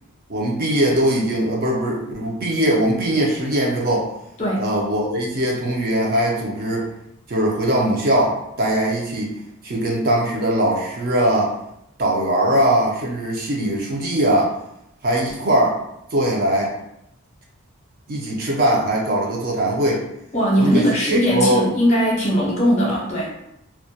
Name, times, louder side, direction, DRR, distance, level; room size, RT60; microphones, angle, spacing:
voice 1, 0.3-4.0 4.6-6.9 7.3-9.3 9.6-11.5 12.0-14.5 15.0-15.8 16.1-16.7 18.1-20.0 20.6-21.6, right 1 dB, 40° right, -2 dB, 0.4 m, -20 dB
voice 2, 20.3-23.3, equal, 30° left, -5 dB, 0.6 m, -19 dB
2.2 x 2.1 x 2.6 m, 0.82 s
head